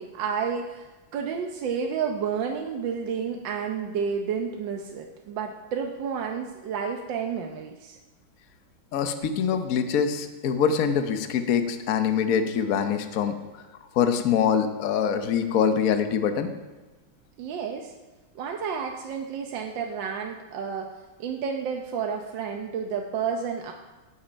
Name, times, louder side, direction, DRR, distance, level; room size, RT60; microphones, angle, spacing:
voice 1, 0.0-8.0 17.4-17.9 18.3-20.9 21.2-23.7, right 6 dB, 65° right, 3 dB, 1.5 m, -31 dB
voice 2, 8.9-13.3 13.9-16.5, left 7 dB, 55° left, 7 dB, 1.1 m, -24 dB
17.5 x 8.9 x 5.2 m, 1.2 s
omnidirectional pair, 2.3 m